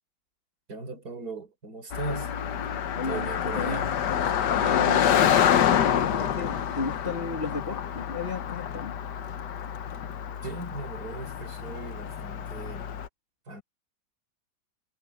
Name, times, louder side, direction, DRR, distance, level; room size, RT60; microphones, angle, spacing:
voice 1, 0.7-2.3 3.0-3.9 10.4-12.9 13.5-13.6, right 3 dB, 55° right, 5.6 m, -38 dB
Car passing by, 1.9-13.1, left 9 dB, 70° left, 1.6 m, -27 dB
voice 2, 2.9-3.8 4.6-5.2 5.7-8.9, left 4 dB, 30° left, 2.6 m, -34 dB
omnidirectional pair, 1.9 m